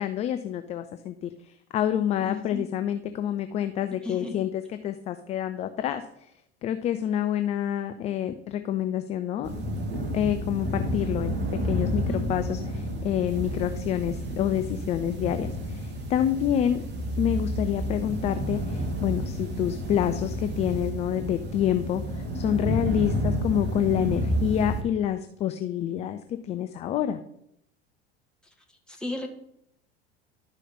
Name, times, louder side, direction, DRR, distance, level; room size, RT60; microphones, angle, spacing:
voice 1, 0.0-4.5 4.8-6.0 6.6-9.5 9.9-11.3 11.6-12.0 12.3-16.8 17.2-27.2, left 10 dB, 20° left, 9 dB, 0.3 m, -27 dB
voice 2, 2.2-2.7 4.0-4.4 11.8-12.3 28.4-29.3, left 2 dB, ahead, 0 dB, 1.5 m, -36 dB
sound 1, 9.4-24.8, equal, 30° right, 1.6 m, -30 dB
11.5 x 4.9 x 4.2 m, 0.76 s
figure-of-eight pair, 80°, 33 cm